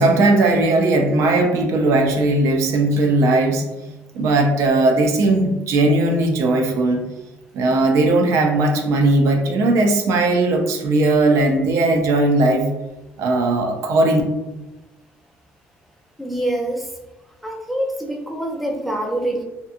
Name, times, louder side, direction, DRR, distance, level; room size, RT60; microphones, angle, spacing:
voice 1, 0.0-3.6 4.1-7.1 7.5-12.7 13.2-14.2, right 2 dB, 70° right, 4 dB, 0.4 m, -18 dB
voice 2, 16.2-16.9 17.4-19.4, right 1 dB, ahead, 0 dB, 0.3 m, -25 dB
2.8 x 2.4 x 2.5 m, 1.0 s
cardioid pair, 150°, 5 cm